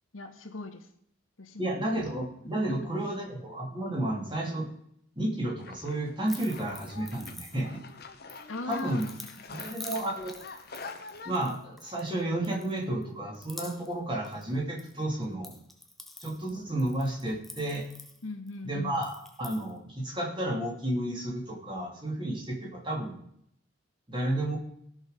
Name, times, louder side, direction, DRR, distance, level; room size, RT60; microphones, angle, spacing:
voice 1, 0.1-0.9 1.4-1.8 2.7-2.8 8.5-9.1 9.7-9.8 18.2-19.0, left 2 dB, 80° left, 6 dB, 1.6 m, -39 dB
voice 2, 1.6-4.7 5.2-7.8 8.7-9.0 9.5-10.4 11.2-15.5 16.2-17.9 18.6-23.2 24.1-24.6, right 1 dB, 25° right, -1 dB, 2.7 m, -32 dB
sound 1, 5.6-11.4, left 4 dB, 50° left, 1.1 m, -46 dB
sound 2, 6.3-7.9 8.3-12.1 12.4-13.0 13.3-14.0 14.2-14.9 15.2-18.5 19.0-19.7, left 1 dB, ahead, 0.9 m, -47 dB
18.5 x 6.3 x 5.0 m, 0.71 s
head